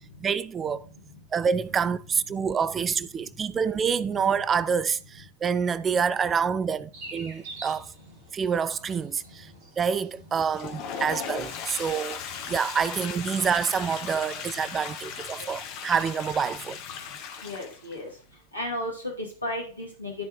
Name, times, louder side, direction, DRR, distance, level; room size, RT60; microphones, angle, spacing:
voice 1, 0.2-0.9 1.3-7.9 8.3-9.5 9.8-12.2 12.5-16.8, right 6 dB, 20° right, 0.3 m, -27 dB
sound 1, 6.9-13.0, right 2 dB, 45° right, 2.6 m, -47 dB
Toilet flush, 10.4-18.0, left 7 dB, 45° left, 1.6 m, -37 dB
voice 2, 17.4-18.1 18.5-20.1, left 1 dB, 85° left, 2.2 m, -33 dB
13.5 x 4.5 x 3.6 m
figure-of-eight pair, 90°, 0 cm